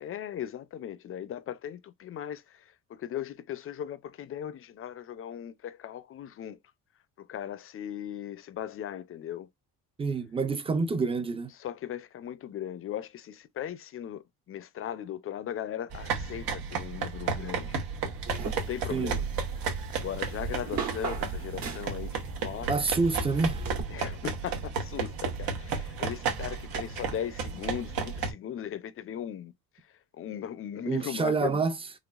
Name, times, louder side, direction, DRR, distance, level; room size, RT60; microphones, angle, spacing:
voice 1, 0.0-6.6 7.2-9.5 11.5-17.8 18.5-19.3 19.9-22.7 23.9-29.5 30.1-31.6, left 10 dB, 40° left, 0.5 m, -38 dB
voice 2, 10.0-11.5 18.9-19.1 22.7-23.7 30.8-31.7, right 4 dB, 15° right, 0.4 m, -27 dB
sound 1, 15.9-28.3, right 5 dB, 80° right, 1.2 m, -33 dB
sound 2, 18.3-23.8, right 4 dB, 50° right, 1.4 m, -38 dB
3.8 x 3.1 x 2.3 m
cardioid pair, 130°, 35 cm